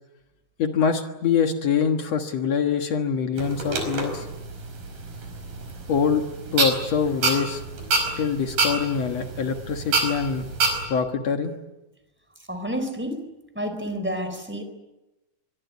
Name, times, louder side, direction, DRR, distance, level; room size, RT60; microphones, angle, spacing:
voice 1, 0.6-4.3 5.9-6.2 6.5-7.6 8.2-10.5 10.9-11.5, left 6 dB, 55° left, 6 dB, 1.9 m, -24 dB
sound 1, 3.4-10.8, right 3 dB, 55° right, 6.4 m, -28 dB
voice 2, 12.5-13.2 13.5-14.6, equal, 5° right, 8 dB, 3.2 m, -29 dB
24.0 x 23.5 x 9.5 m, 1.0 s
omnidirectional pair, 4.8 m